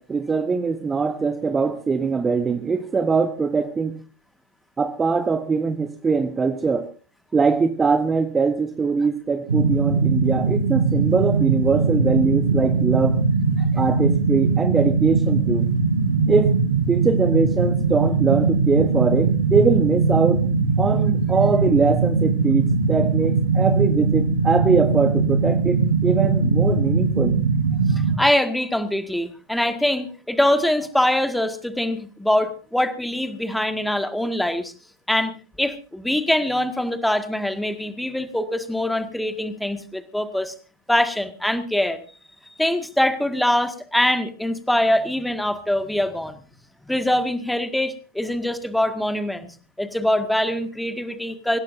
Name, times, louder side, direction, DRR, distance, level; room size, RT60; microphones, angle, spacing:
voice 1, 0.0-4.0 4.8-6.9 7.3-13.2 13.8-15.7 16.3-16.5 16.9-20.4 20.8-27.3, right 5 dB, 15° right, 10 dB, 1.1 m, -22 dB
sound 1, 9.5-28.2, right 4 dB, 70° right, 1.5 m, -20 dB
voice 2, 27.9-34.7 35.1-40.5 40.9-42.0 42.6-46.3 46.9-49.5 49.8-51.6, left 1 dB, ahead, 9 dB, 1.9 m, -23 dB
25.5 x 17.0 x 2.7 m, 0.37 s
figure-of-eight pair, 90°, 0 cm